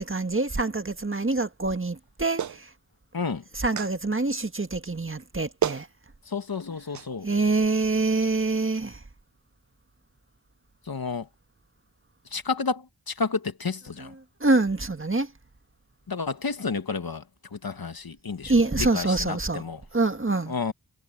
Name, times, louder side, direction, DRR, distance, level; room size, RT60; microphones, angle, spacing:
voice 1, 0.0-2.7 3.5-5.9 7.2-9.0 14.4-15.3 18.4-19.6 19.9-20.5, right 3 dB, 30° right, 1.6 m, -25 dB
Clapping, 2.4-2.6 3.8-3.9 5.2-5.3 5.6-5.9 6.9-7.1, right 9 dB, 45° right, 0.5 m, -29 dB
voice 2, 3.1-3.4 6.3-7.3 10.9-11.3 12.3-14.1 16.1-17.2 17.5-19.8 20.5-20.7, left 4 dB, 60° left, 1.6 m, -31 dB
cardioid pair, 45°, 40 cm